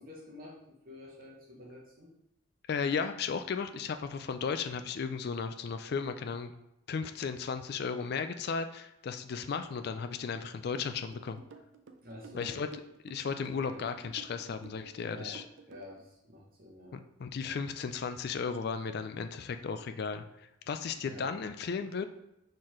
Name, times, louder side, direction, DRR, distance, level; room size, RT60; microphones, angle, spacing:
voice 1, 0.0-2.1 12.0-12.5 13.7-13.9 15.0-15.4 15.7-17.0 21.0-21.3, left 1 dB, 45° right, -3 dB, 0.9 m, -49 dB
voice 2, 2.7-6.5 6.9-11.4 12.3-12.7 13.0-15.4 16.9-20.2 20.7-22.1, left 5 dB, 50° left, 9 dB, 0.3 m, -35 dB
sound 1, 10.7-16.0, right 4 dB, 60° right, 0.5 m, -52 dB
4.4 x 3.8 x 3.1 m, 0.86 s
head